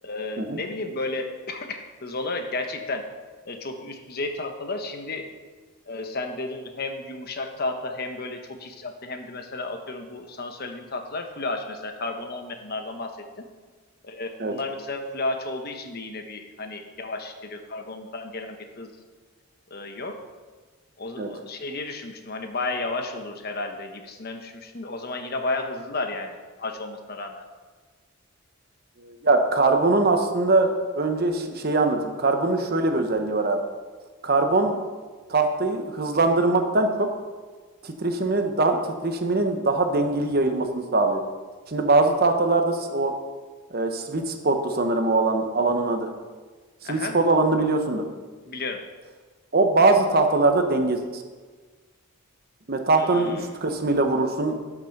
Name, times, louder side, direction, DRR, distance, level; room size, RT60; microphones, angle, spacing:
voice 1, 0.0-3.0 3.4-5.3 5.9-13.1 14.0-18.9 19.7-20.1 21.0-27.4 46.8-47.2 48.5-48.8 53.0-53.5, left 2 dB, 45° left, 5 dB, 1.1 m, -33 dB
voice 2, 29.0-33.6 34.2-34.8 35.3-37.1 37.8-41.2 41.7-43.1 43.7-46.1 46.8-48.0 49.5-51.2 52.7-54.5, right 2 dB, 45° right, 5 dB, 1.0 m, -22 dB
12.0 x 6.2 x 5.9 m, 1.4 s
head